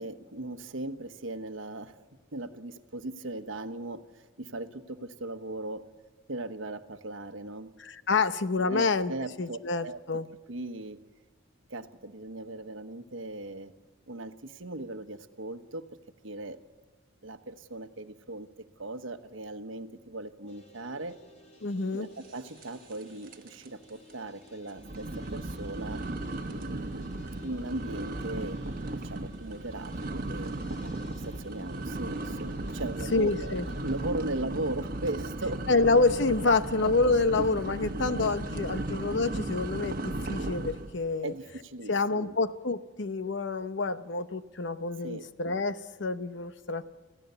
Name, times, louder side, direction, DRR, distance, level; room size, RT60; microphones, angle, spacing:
voice 1, 0.0-2.0 2.3-5.8 6.3-7.7 8.7-10.0 10.5-11.0 11.7-13.7 14.1-15.9 16.2-16.6 17.2-18.5 18.8-21.2 21.9-26.0 26.5-27.2 27.4-28.6 28.9-33.6 33.8-35.6 38.6-38.8 41.2-42.3 45.0-45.3, right 2 dB, 80° right, 9 dB, 1.1 m, -38 dB
voice 2, 7.8-9.1 9.4-10.3 21.6-22.1 33.1-33.7 35.7-41.3 41.9-46.9, left 3 dB, 65° left, 12 dB, 0.8 m, -27 dB
sound 1, 20.5-34.0, left 1 dB, 35° left, 2.3 m, -55 dB
sound 2, 22.6-23.0 23.3-23.7 24.1-24.2 24.8-40.9, right 2 dB, 50° right, 1.2 m, -36 dB
26.5 x 15.5 x 6.9 m, 1.3 s
head